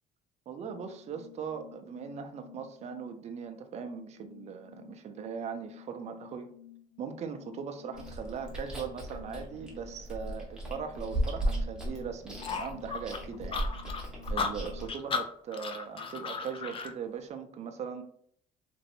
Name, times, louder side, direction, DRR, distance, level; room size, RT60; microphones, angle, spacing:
voice 1, 0.5-6.5 7.0-13.6 14.3-18.0, right 6 dB, 40° right, 6 dB, 0.4 m, -40 dB
sound 1, 0.6-15.1, left 12 dB, 75° left, 1.2 m, -52 dB
Chewing mastication, 7.9-14.9, right 1 dB, 5° right, 0.9 m, -36 dB
sound 2, 12.4-16.9, left 5 dB, 30° left, 0.4 m, -35 dB
3.0 x 2.6 x 2.7 m, 0.63 s
cardioid pair, 110°, 17 cm